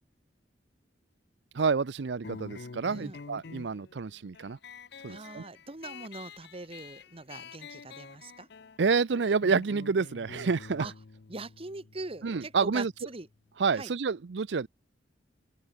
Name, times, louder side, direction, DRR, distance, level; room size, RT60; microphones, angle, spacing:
voice 1, 1.5-4.6 5.0-5.4 8.8-10.9 12.2-12.9 13.6-14.7, right 5 dB, 75° right, 0.6 m, -28 dB
sound 1, 2.2-13.4, left 4 dB, 65° left, 0.6 m, -48 dB
voice 2, 5.1-8.5 10.8-10.9 11.3-13.3 13.7-13.9, right 3 dB, 35° right, 1.4 m, -42 dB
open air
head